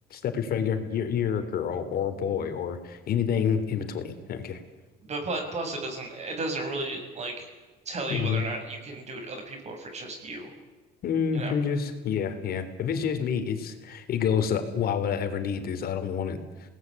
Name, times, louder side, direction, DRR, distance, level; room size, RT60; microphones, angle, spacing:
voice 1, 0.1-4.6 8.1-8.4 11.0-16.4, left 7 dB, 65° left, 8 dB, 3.6 m, -28 dB
voice 2, 5.1-7.5 7.9-10.5 11.3-11.6, right 2 dB, 40° right, 4 dB, 7.0 m, -34 dB
29.0 x 19.0 x 9.7 m, 1.2 s
cardioid pair, 110°, 17 cm